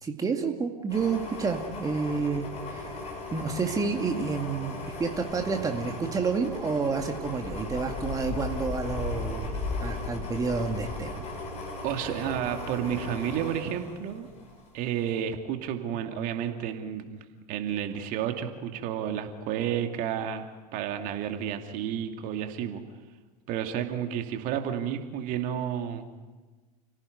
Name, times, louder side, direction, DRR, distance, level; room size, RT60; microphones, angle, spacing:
voice 1, 0.0-2.9 3.3-11.3, right 4 dB, 15° right, 3 dB, 2.2 m, -30 dB
sound 1, 0.9-14.6 15.0-15.2, left 2 dB, 30° left, 7.7 m, -37 dB
voice 2, 11.8-14.3 14.7-17.2 17.5-22.8 23.5-26.1, right 9 dB, 40° right, 5 dB, 2.5 m, -31 dB
29.5 x 17.5 x 9.5 m, 1.3 s
figure-of-eight pair, 90°, 20 cm